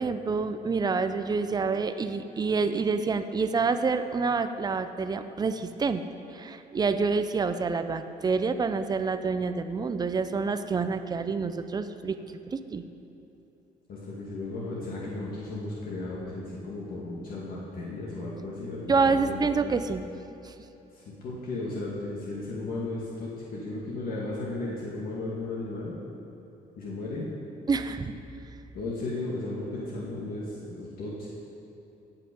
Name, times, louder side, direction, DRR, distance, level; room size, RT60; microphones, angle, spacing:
voice 1, 0.0-6.0 6.3-12.2 12.5-12.8 18.9-20.1 20.4-20.5 27.7-28.1, right 4 dB, 25° right, 9 dB, 0.6 m, -27 dB
voice 2, 13.9-19.6 20.9-25.9 26.8-27.3 28.7-31.3, left 2 dB, 60° left, -6 dB, 2.0 m, -35 dB
17.0 x 5.8 x 5.4 m, 2.9 s
cardioid pair, 110°, 17 cm